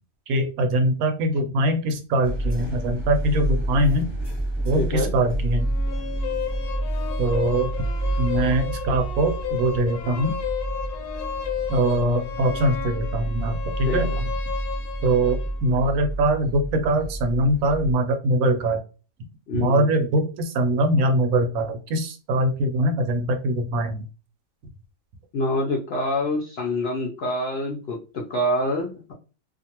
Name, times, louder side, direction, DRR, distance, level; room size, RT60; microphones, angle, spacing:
voice 1, 0.3-4.1 4.6-5.7 7.2-7.7 8.2-10.3 11.7-14.3 15.0-18.8 19.5-24.1, right 1 dB, 75° right, 5 dB, 1.0 m, -22 dB
sound 1, 2.2-17.9, right 1 dB, 20° left, 0.9 m, -29 dB
voice 2, 4.7-5.1 13.9-14.2 19.5-19.9 25.3-29.1, left 1 dB, 65° left, -1 dB, 0.6 m, -26 dB
sound 2, 5.6-15.6, left 8 dB, 85° left, 1.1 m, -33 dB
2.5 x 2.4 x 2.8 m, 0.34 s
omnidirectional pair, 1.6 m